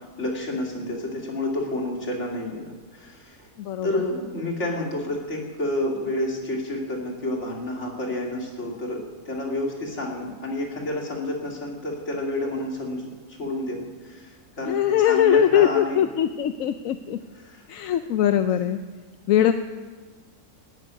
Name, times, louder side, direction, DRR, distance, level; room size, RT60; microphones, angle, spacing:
voice 1, 0.2-3.5 3.8-14.8 15.0-16.0 17.4-17.7, left 1 dB, 45° left, -1 dB, 3.0 m, -29 dB
voice 2, 3.6-4.0 14.6-17.2 17.7-18.8 19.3-19.5, left 10 dB, 70° left, 9 dB, 1.0 m, -21 dB
13.0 x 10.0 x 9.4 m, 1.4 s
omnidirectional pair, 1.6 m